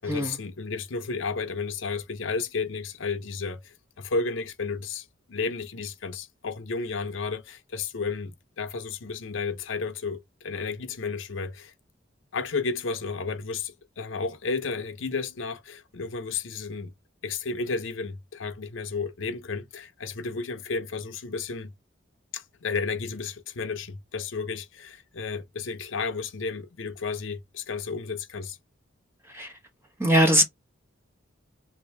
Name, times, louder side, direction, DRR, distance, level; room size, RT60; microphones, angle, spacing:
voice 1, 0.0-11.7 12.3-16.9 17.2-21.7 22.3-28.6, left 4 dB, 80° left, 0.7 m, -32 dB
voice 2, 30.0-30.4, equal, 10° right, 0.9 m, -21 dB
3.4 x 2.7 x 3.3 m
head